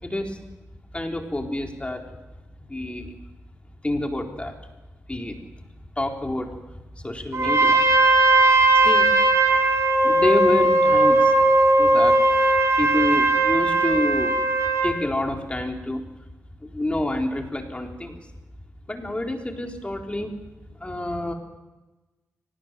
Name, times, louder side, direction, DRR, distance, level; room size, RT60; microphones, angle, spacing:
voice 1, 0.0-0.4 0.9-2.0 2.7-3.1 3.8-4.6 5.1-5.4 6.0-6.5 7.0-7.8 8.7-9.1 10.0-11.3 11.8-12.2 12.8-14.3 14.8-16.0 16.6-18.2 18.9-20.3 20.8-21.3, left 1 dB, 20° left, 3 dB, 4.3 m, -27 dB
Trumpet, 7.3-15.0, right 2 dB, 60° right, 5.9 m, -18 dB
24.0 x 19.5 x 7.8 m, 1.1 s
cardioid pair, 50°, 6 cm